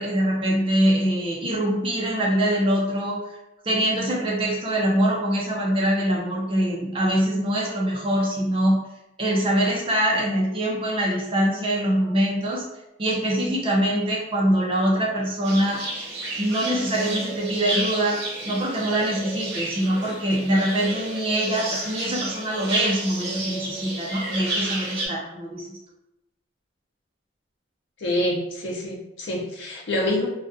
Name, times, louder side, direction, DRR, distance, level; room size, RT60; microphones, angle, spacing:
voice 1, 0.0-3.4 3.6-8.8 9.2-12.6 13.0-15.8 16.4-25.7, right 1 dB, 25° right, -3 dB, 0.5 m, -23 dB
sound 1, 15.4-25.1, right 2 dB, 85° right, 0.9 m, -31 dB
voice 2, 28.0-30.3, left 1 dB, 70° left, -2 dB, 0.6 m, -26 dB
2.4 x 2.2 x 2.5 m, 0.90 s
head